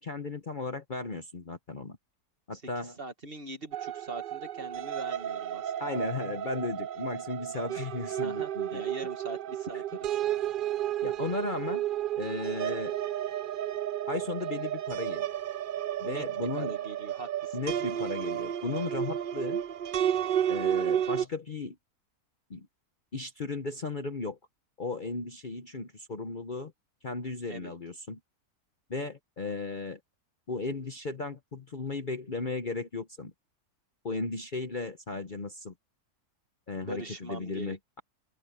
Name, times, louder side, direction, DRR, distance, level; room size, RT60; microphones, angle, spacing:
voice 1, 0.0-2.0 2.5-3.0 5.8-8.8 11.0-11.9 12.2-13.0 14.1-15.3 16.0-16.7 17.5-19.6 20.5-21.8 22.5-22.7 23.1-24.4 24.8-26.7 27.0-28.2 28.9-30.0 30.5-33.3 34.0-35.7 36.7-38.0, left 3 dB, 35° left, 1.0 m, -35 dB
voice 2, 3.0-5.9 8.2-10.2 16.0-16.2 16.5-17.6 27.5-27.7 36.8-37.8, right 2 dB, 40° right, 2.1 m, -42 dB
sound 1, 3.7-21.2, right 10 dB, 85° right, 0.4 m, -32 dB
open air
omnidirectional pair, 1.6 m